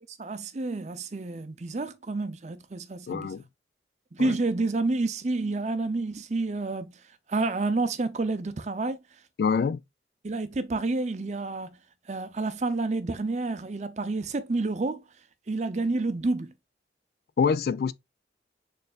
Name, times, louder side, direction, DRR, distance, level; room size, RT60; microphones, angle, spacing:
voice 1, 0.2-3.3 4.1-7.0 7.3-9.0 10.2-11.8 12.1-15.0 15.5-16.5, right 3 dB, 40° right, 0.5 m, -29 dB
voice 2, 3.1-3.4 4.2-4.3 9.4-9.8 17.4-17.9, left 6 dB, 55° left, 0.3 m, -25 dB
6.6 x 3.3 x 2.3 m
head